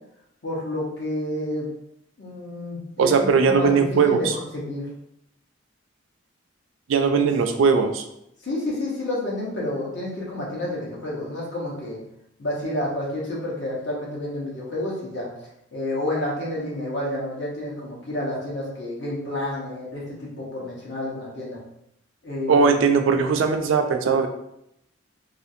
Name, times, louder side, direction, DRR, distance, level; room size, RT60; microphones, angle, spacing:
voice 1, 0.4-1.7 2.2-4.9 7.1-7.2 8.4-12.0 12.4-15.3 15.7-21.6 22.2-22.8, left 1 dB, 60° left, -4 dB, 0.9 m, -30 dB
voice 2, 3.0-4.3 6.9-8.0 22.5-24.3, right 5 dB, 75° right, 6 dB, 0.3 m, -19 dB
2.5 x 2.4 x 2.6 m, 0.79 s
head